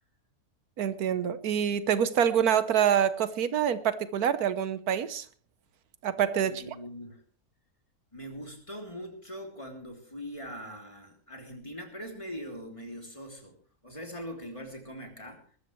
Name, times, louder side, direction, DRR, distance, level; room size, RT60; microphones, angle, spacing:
voice 1, 0.8-5.2 6.0-6.6, right 9 dB, 85° right, 13 dB, 1.4 m, -26 dB
voice 2, 6.4-7.2 8.1-13.6 13.8-15.4, equal, 20° left, 2 dB, 3.2 m, -42 dB
20.5 x 13.5 x 3.2 m, 0.44 s
omnidirectional pair, 1.6 m